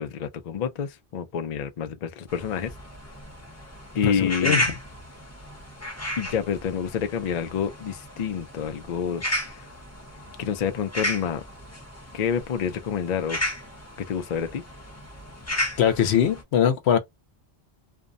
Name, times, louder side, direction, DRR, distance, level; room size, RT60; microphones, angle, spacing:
voice 1, 0.0-2.7 3.9-4.6 6.2-9.7 10.4-11.4 12.1-13.4 14.1-14.6, left 7 dB, 55° left, 0.5 m, -28 dB
sound 1, 2.3-16.4, left 1 dB, 15° left, 0.7 m, -34 dB
voice 2, 4.0-4.6 15.8-17.0, left 9 dB, 85° left, 0.9 m, -21 dB
2.6 x 2.1 x 2.5 m
omnidirectional pair, 1.1 m